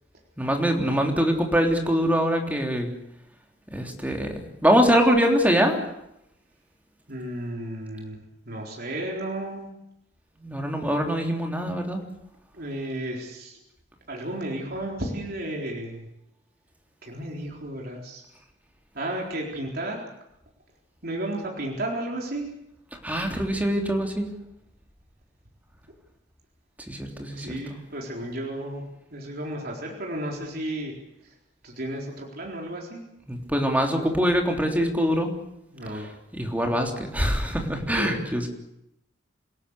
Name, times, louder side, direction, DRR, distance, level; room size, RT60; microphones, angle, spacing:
voice 1, 0.4-2.9 3.7-4.3 4.6-5.8 10.4-12.0 23.0-24.3 26.9-27.8 33.3-35.3 36.3-38.5, equal, 10° right, 2 dB, 3.5 m, -23 dB
voice 2, 7.1-8.2 8.5-9.7 12.5-13.6 14.1-16.1 17.0-18.2 18.9-20.0 21.0-22.5 27.3-28.8 29.1-30.9 31.2-31.3 31.6-33.0 35.7-36.1 37.9-38.2, right 1 dB, 55° right, 0 dB, 4.2 m, -33 dB
27.5 x 17.5 x 8.3 m, 0.83 s
head